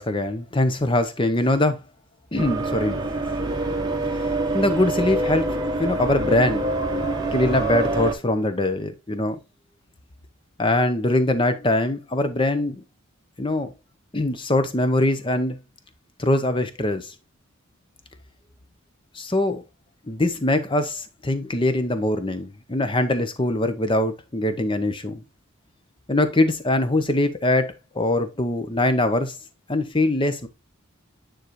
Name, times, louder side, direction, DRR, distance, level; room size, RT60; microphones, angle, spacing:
voice 1, 0.0-1.8 2.3-3.1 4.1-4.3 4.5-6.7 7.3-9.4 10.6-12.8 13.4-13.7 14.1-15.6 16.2-17.1 19.1-19.6 20.1-25.2 26.1-29.4 29.7-30.5, left 1 dB, 25° left, 0.8 m, -22 dB
sound 1, 2.4-8.1, right 2 dB, 20° right, 1.1 m, -25 dB
9.5 x 3.9 x 3.1 m
head